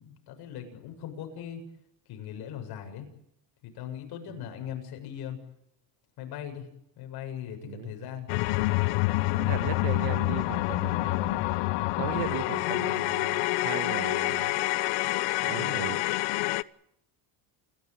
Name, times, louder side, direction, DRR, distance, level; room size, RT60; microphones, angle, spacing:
voice 1, 0.0-1.6 2.1-3.1 3.6-5.4 6.2-6.7 7.0-8.3 9.0-10.1 15.6-15.9, left 9 dB, 55° left, 7.2 m, -40 dB
voice 2, 7.6-7.9 9.3-11.5 12.0-14.6 15.4-16.0, right 15 dB, 70° right, 1.5 m, -37 dB
sound 1, 8.3-16.6, left 21 dB, 70° left, 1.0 m, -27 dB
29.0 x 16.0 x 9.2 m
cardioid pair, 175°, 46 cm